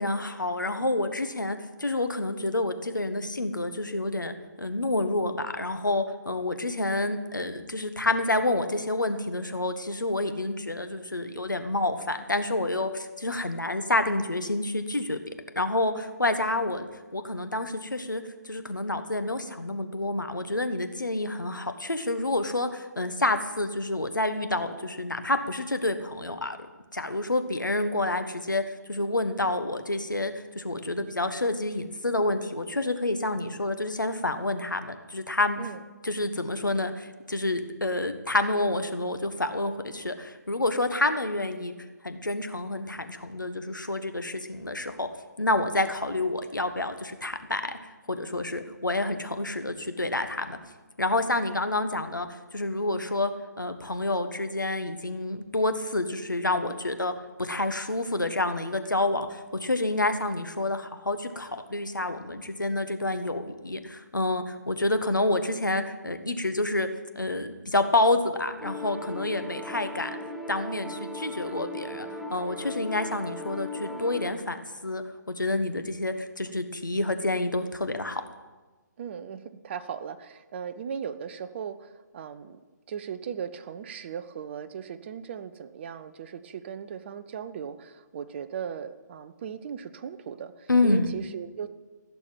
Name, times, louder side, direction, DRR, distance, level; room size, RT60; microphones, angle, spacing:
voice 1, 0.0-15.2 15.5-26.6 26.9-28.6 28.9-35.6 36.0-41.7 42.0-45.1 45.4-47.8 48.1-50.6 51.0-52.3 52.5-53.3 53.6-57.1 57.4-66.9 67.1-70.2 70.5-74.6 74.8-78.2 90.7-91.1, left 2 dB, 90° left, 8 dB, 1.4 m, -28 dB
sound 1, 68.6-74.3, left 1 dB, 5° right, 0.9 m, -38 dB
voice 2, 79.0-82.6 82.9-91.7, right 7 dB, 35° right, 11 dB, 0.8 m, -38 dB
15.5 x 7.0 x 8.9 m, 1.3 s
figure-of-eight pair, 140°, 10 cm